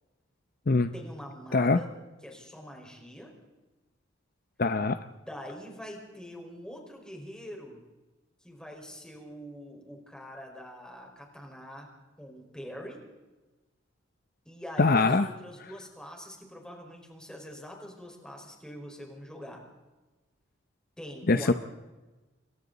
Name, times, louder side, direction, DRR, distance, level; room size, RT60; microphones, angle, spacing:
voice 1, 0.9-1.9 2.2-3.3 5.0-7.8 8.4-11.9 12.2-13.0 14.5-19.6 21.0-21.5, equal, 5° left, 0 dB, 5.0 m, -44 dB
voice 2, 4.6-5.0 14.8-15.2 21.3-21.5, left 3 dB, 50° left, 10 dB, 0.7 m, -22 dB
29.0 x 23.0 x 4.1 m, 1.2 s
head